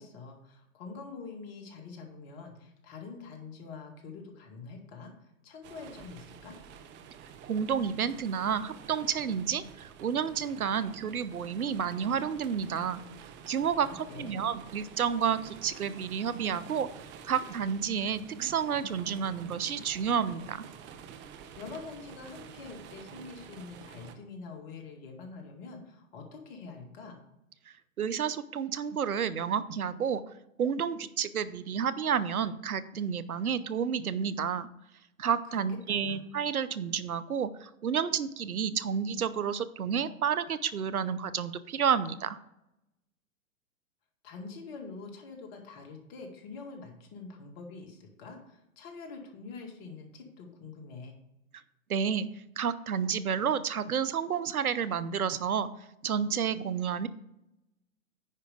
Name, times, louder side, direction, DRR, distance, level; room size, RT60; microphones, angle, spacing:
voice 1, 0.0-6.6 13.8-14.5 21.6-27.2 35.5-36.2 44.2-51.2, left 4 dB, 45° left, 3 dB, 2.2 m, -45 dB
sound 1, 5.6-24.1, right 7 dB, 25° right, 0.8 m, -49 dB
voice 2, 7.4-13.0 13.5-16.9 17.2-20.6 28.0-30.2 30.6-34.7 35.2-42.4 51.9-52.3 52.6-55.7 56.0-57.1, right 7 dB, 85° right, 15 dB, 0.7 m, -30 dB
9.8 x 5.1 x 5.0 m, 0.85 s
figure-of-eight pair, 110°, 42 cm